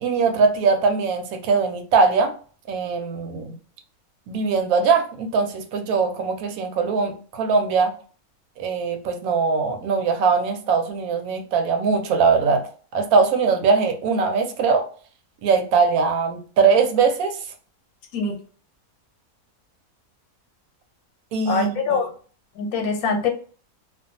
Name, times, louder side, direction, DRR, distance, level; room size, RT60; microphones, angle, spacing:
voice 1, 0.0-2.3 2.7-3.5 4.3-7.9 8.6-12.6 12.9-14.9 15.4-17.4 21.3-22.0, right 5 dB, 80° right, 5 dB, 1.1 m, -21 dB
voice 2, 21.5-22.1 22.6-23.3, left 5 dB, 90° left, 4 dB, 1.2 m, -23 dB
2.5 x 2.2 x 2.6 m, 0.42 s
omnidirectional pair, 1.5 m